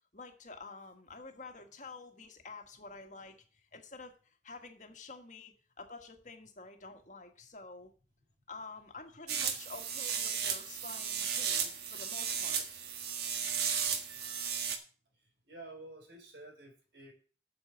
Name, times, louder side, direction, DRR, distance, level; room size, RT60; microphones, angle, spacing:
voice 1, 0.1-7.9 8.5-12.6 13.9-14.7, left 3 dB, 45° left, 5 dB, 1.7 m, -49 dB
sound 1, 9.3-14.8, right 7 dB, 65° right, 1.4 m, -34 dB
voice 2, 15.1-17.1, right 2 dB, 85° right, 3 dB, 4.1 m, -51 dB
8.5 x 6.7 x 7.1 m, 0.39 s
head